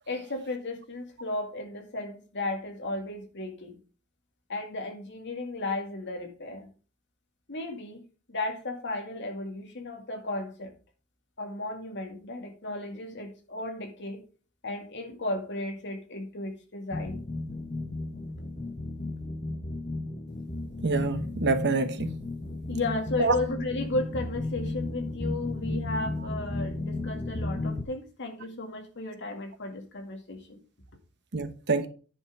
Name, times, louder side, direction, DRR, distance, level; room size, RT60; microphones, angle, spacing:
voice 1, 0.1-3.8 4.5-6.7 7.5-8.0 8.3-10.7 11.4-14.2 14.6-17.2 22.7-30.6, left 2 dB, 55° left, 2.1 m, -34 dB
sound 1, 16.9-27.8, left 2 dB, 30° left, 1.1 m, -34 dB
voice 2, 20.8-22.1 23.2-23.3 31.3-31.9, right 3 dB, 50° right, 1.0 m, -26 dB
10.0 x 5.6 x 4.9 m
head